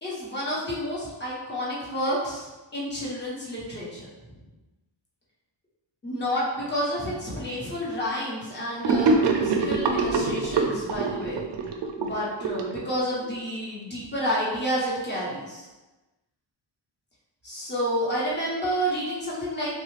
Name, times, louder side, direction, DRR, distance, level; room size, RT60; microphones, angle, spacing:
voice 1, 0.0-4.1 6.0-11.4 12.0-15.7 17.4-19.8, equal, 20° left, -7 dB, 1.1 m, -30 dB
Gurgling / Sink (filling or washing), 8.8-13.3, right 4 dB, 60° right, 0.5 m, -24 dB
3.3 x 2.4 x 3.2 m, 1.1 s
wide cardioid pair, 115°, 49 cm